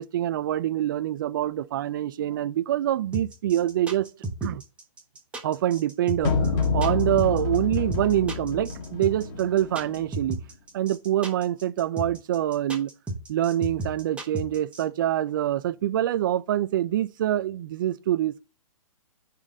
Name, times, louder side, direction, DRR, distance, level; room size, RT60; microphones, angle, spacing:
voice 1, 0.0-4.1 4.4-4.6 5.4-10.4 10.7-12.9 13.3-18.4, right 12 dB, 35° right, 0.4 m, -25 dB
sound 1, 3.1-14.8, right 2 dB, 5° right, 1.1 m, -33 dB
sound 2, 6.2-10.3, left 4 dB, 30° left, 1.7 m, -28 dB
9.7 x 4.1 x 3.9 m
hypercardioid pair, 155°, 18 cm